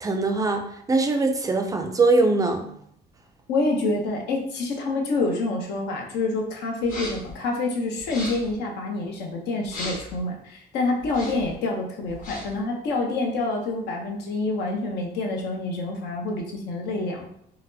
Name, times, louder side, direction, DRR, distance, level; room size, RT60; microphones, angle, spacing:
voice 1, 0.0-2.7, right 3 dB, 20° right, 5 dB, 0.3 m, -22 dB
voice 2, 3.5-17.3, left 2 dB, 80° left, 1 dB, 0.7 m, -27 dB
sound 1, 6.8-7.3 8.0-8.6 9.6-10.2 11.0-11.5 12.1-12.6, left 1 dB, 50° left, 1.2 m, -37 dB
4.0 x 2.0 x 2.6 m, 0.70 s
cardioid pair, 110°, 17 cm